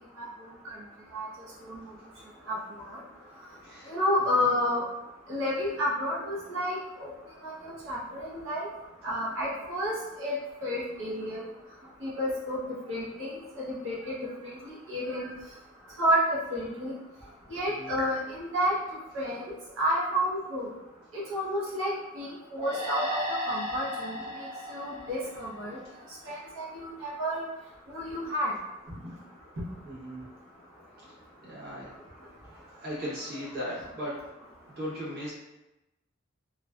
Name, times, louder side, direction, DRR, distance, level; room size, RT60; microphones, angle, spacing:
voice 1, 0.2-0.8 1.1-1.3 1.6-1.8 2.5-2.6 2.8-3.0 3.9-4.8 5.3-7.1 7.4-8.7 9.0-10.3 10.6-11.4 12.0-12.6 12.9-13.3 13.7-14.2 14.4-15.3 16.0-16.9 17.5-18.7 19.1-20.7 21.1-25.8 26.2-27.4 27.9-28.5 29.6-29.7, equal, 80° right, -7 dB, 0.7 m, -30 dB
voice 2, 3.6-3.9 4.3-4.5 17.8-18.0 29.8-30.3 31.4-31.9 32.8-34.2 34.7-35.3, equal, 55° right, -9 dB, 0.9 m, -37 dB
sound 1, 22.6-26.1, equal, 25° right, 0.6 m, -35 dB
2.4 x 2.2 x 2.2 m, 0.98 s
head